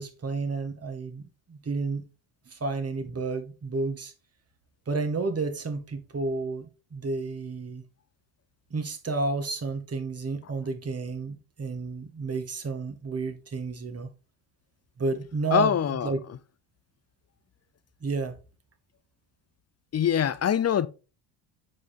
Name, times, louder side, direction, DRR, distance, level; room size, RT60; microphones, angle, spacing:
voice 1, 0.0-2.0 2.5-4.1 4.9-7.8 8.7-14.1 15.0-15.8 16.0-16.2 18.0-18.4, right 3 dB, 30° right, 1.9 m, -31 dB
voice 2, 15.5-16.1 19.9-20.9, left 9 dB, 30° left, 0.7 m, -23 dB
8.6 x 4.8 x 4.3 m
hypercardioid pair, 60°, 49 cm